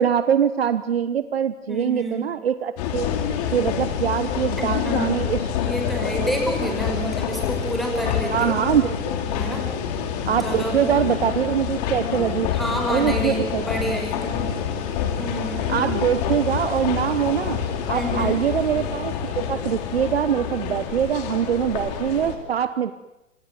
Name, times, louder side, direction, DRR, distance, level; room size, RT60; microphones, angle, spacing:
voice 1, 0.0-5.4 6.1-6.3 8.3-9.0 10.3-12.5 12.9-13.6 15.7-17.6 17.9-22.9, right 9 dB, 55° right, 13 dB, 1.1 m, -23 dB
voice 2, 1.7-2.3 4.6-5.1 5.6-8.6 9.4-9.7 10.4-10.8 12.5-14.4 15.2-15.7 17.9-18.4, equal, ahead, 2 dB, 5.9 m, -28 dB
sound 1, 2.8-22.4, left 8 dB, 30° left, 3.4 m, -27 dB
27.5 x 26.0 x 7.8 m, 0.93 s
figure-of-eight pair, 120°, 37 cm